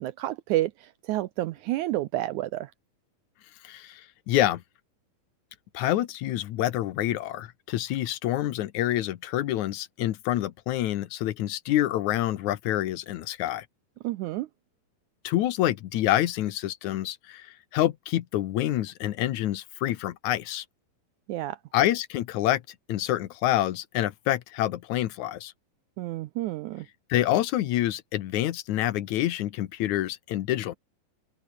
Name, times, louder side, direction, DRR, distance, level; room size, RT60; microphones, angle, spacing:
voice 1, 0.0-2.7 14.0-14.5 21.3-21.6 26.0-26.9, right 16 dB, 75° right, 1.8 m, -30 dB
voice 2, 3.6-4.6 5.7-13.7 15.2-20.7 21.7-22.6 22.9-25.5 27.1-30.8, left 13 dB, 65° left, 2.2 m, -27 dB
open air
omnidirectional pair, 4.0 m